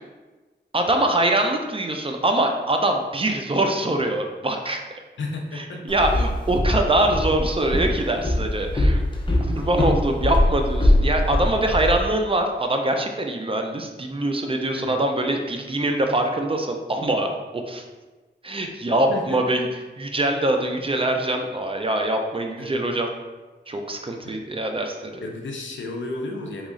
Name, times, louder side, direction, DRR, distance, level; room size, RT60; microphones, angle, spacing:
voice 1, 0.7-4.8 5.5-9.0 9.5-17.3 17.7-17.8 18.4-19.7 20.0-23.1 23.7-25.2, right 1 dB, 30° right, 3 dB, 0.4 m, -23 dB
voice 2, 5.2-5.9 14.7-15.0 19.1-19.4 22.5-22.8 24.2-24.3 25.2-26.7, left 2 dB, 80° left, 1 dB, 0.5 m, -33 dB
Walk footsteps, 5.9-12.0, left 1 dB, 25° left, 0.5 m, -22 dB
2.9 x 2.4 x 3.7 m, 1.2 s
wide cardioid pair, 70°, 19 cm